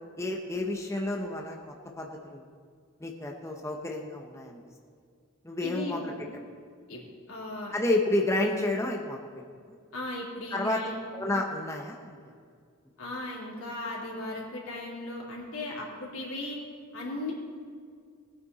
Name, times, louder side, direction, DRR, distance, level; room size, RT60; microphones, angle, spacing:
voice 1, 0.2-1.6 2.0-2.4 3.0-4.6 5.4-6.1 7.7-9.3 10.5-10.8 11.1-12.1, left 2 dB, 15° left, 1 dB, 0.9 m, -30 dB
voice 2, 5.6-6.2 6.9-7.0 7.3-7.7 9.9-10.9 13.0-16.6 16.9-17.3, left 1 dB, 90° left, -4 dB, 3.5 m, -37 dB
19.5 x 8.7 x 4.2 m, 2.1 s
head